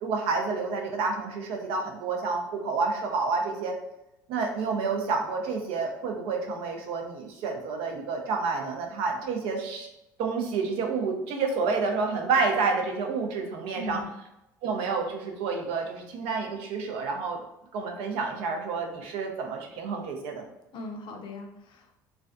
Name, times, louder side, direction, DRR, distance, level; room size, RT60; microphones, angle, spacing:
voice 1, 0.0-3.7 4.3-9.9 10.2-14.0 14.6-17.4 17.7-20.5, right 4 dB, 70° right, 2 dB, 0.5 m, -29 dB
voice 2, 13.7-14.2 20.7-22.0, left 2 dB, 50° left, 2 dB, 0.5 m, -40 dB
2.4 x 2.2 x 2.4 m, 0.87 s
hypercardioid pair, 75°, 10 cm